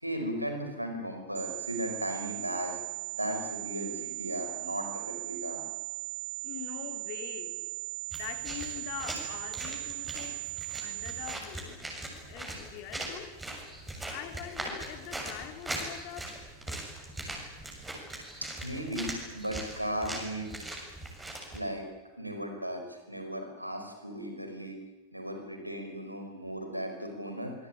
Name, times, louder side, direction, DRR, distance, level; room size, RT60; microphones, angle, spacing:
voice 1, 0.0-2.8 3.1-5.6 18.4-20.5 21.5-21.9 22.2-24.8 25.1-27.5, equal, 90° right, 5.1 m, -36 dB
sound 1, 1.3-11.3, right 26 dB, 50° right, 3.2 m, -38 dB
voice 2, 6.4-7.6 8.1-10.5 10.8-13.4 14.1-16.4 16.7-17.0, left 12 dB, 45° left, 3.1 m, -44 dB
sound 2, 8.1-21.6, right 1 dB, 10° right, 7.2 m, -40 dB
25.5 x 22.5 x 8.9 m
figure-of-eight pair, 90°, 0 cm